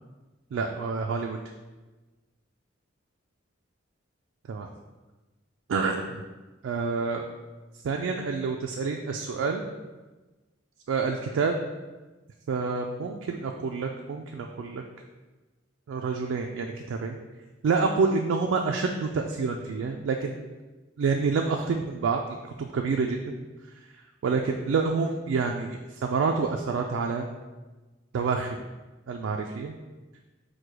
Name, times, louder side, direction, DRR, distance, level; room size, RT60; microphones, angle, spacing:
voice 1, 0.5-1.4 4.5-4.7 5.7-6.2 6.6-7.3 7.8-9.6 10.9-11.6 12.5-14.8 15.9-17.2 17.6-20.4 21.0-22.2 22.6-23.4 24.2-27.3 28.1-28.6 29.1-29.7, right 4 dB, 90° right, 2 dB, 0.3 m, -28 dB
4.6 x 2.2 x 4.7 m, 1.2 s
head